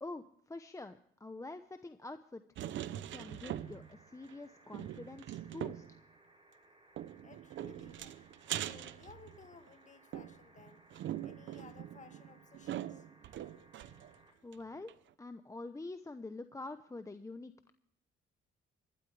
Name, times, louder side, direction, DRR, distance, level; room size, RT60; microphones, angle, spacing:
voice 1, 0.0-2.4 3.1-5.8 14.4-14.9 15.2-17.7, left 2 dB, 15° left, 9 dB, 0.8 m, -46 dB
sound 1, 2.6-4.0 4.3-4.4 4.7-6.0 7.0-9.7 10.1-14.1 14.5-14.6 14.9-15.0, right 12 dB, 70° right, 0.8 m, -42 dB
sound 2, 3.1-14.3 15.8-15.9, right 1 dB, 25° right, 6.7 m, -64 dB
voice 2, 7.2-8.2 8.6-10.9 11.2-13.1, left 5 dB, 40° left, 8 dB, 2.0 m, -58 dB
25.0 x 12.0 x 3.3 m, 0.70 s
cardioid pair, 90°, 20 cm